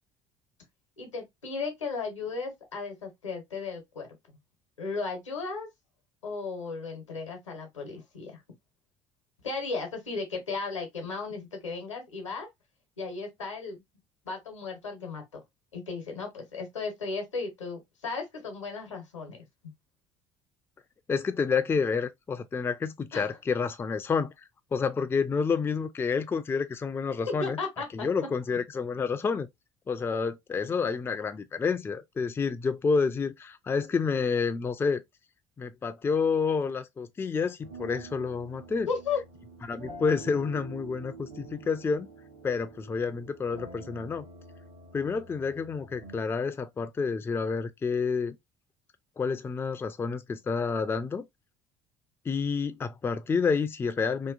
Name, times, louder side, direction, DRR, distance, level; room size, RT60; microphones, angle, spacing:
voice 1, 1.0-4.4 4.8-5.7 6.2-8.4 9.4-12.5 13.0-13.8 14.2-15.4 15.7-19.5 23.1-23.4 27.4-28.1 38.9-39.2, left 4 dB, 85° left, 0.9 m, -35 dB
voice 2, 21.1-24.3 24.7-27.6 27.9-29.5 29.9-35.0 35.6-38.9 39.7-42.1 42.4-44.3 44.9-48.4 49.2-51.3 52.3-54.3, left 5 dB, 15° left, 0.3 m, -29 dB
sound 1, 37.6-46.2, right 3 dB, 65° right, 0.9 m, -47 dB
2.8 x 2.3 x 2.3 m
figure-of-eight pair, 55°, 16 cm